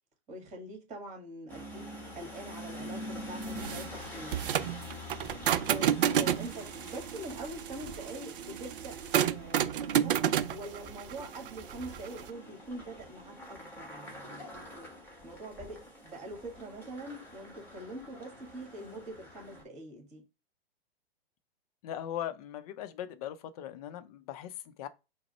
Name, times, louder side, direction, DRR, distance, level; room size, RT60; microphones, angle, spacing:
voice 1, 0.3-4.4 5.6-14.9 15.2-20.2, right 1 dB, 20° right, 1.9 m, -44 dB
sound 1, 1.5-19.6, left 1 dB, 5° left, 1.4 m, -46 dB
sound 2, 3.4-12.3, right 10 dB, 60° right, 0.5 m, -31 dB
voice 2, 6.0-6.4 21.8-24.9, left 11 dB, 40° left, 0.5 m, -40 dB
4.7 x 2.1 x 4.2 m
figure-of-eight pair, 115°, 31 cm